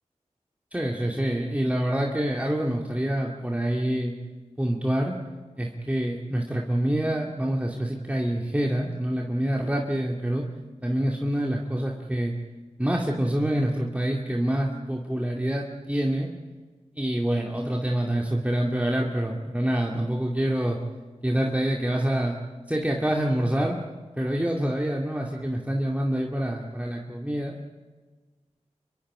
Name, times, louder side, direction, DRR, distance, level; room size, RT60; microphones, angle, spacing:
voice 1, 0.7-4.1 4.6-5.2 5.6-10.4 10.8-12.4 12.8-16.3 16.9-20.8 21.2-22.4 22.7-23.8 24.2-27.6, right 1 dB, 10° right, -1 dB, 2.4 m, -26 dB
26.0 x 22.5 x 5.0 m, 1.3 s
cardioid pair, 45°, 13 cm